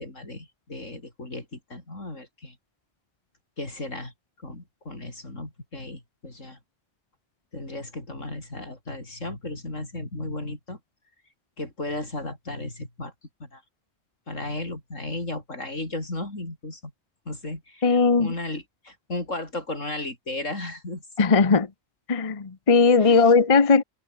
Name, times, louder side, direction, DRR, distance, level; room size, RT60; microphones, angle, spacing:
voice 1, 0.0-2.6 3.6-4.1 4.4-6.6 7.5-10.8 11.6-13.1 13.4-13.6 14.3-16.9 17.3-21.3 23.0-23.3, left 2 dB, 75° left, 6.3 m, -35 dB
voice 2, 17.8-18.3 21.2-21.7 22.1-23.8, left 4 dB, 30° left, 1.0 m, -18 dB
omnidirectional pair, 1.3 m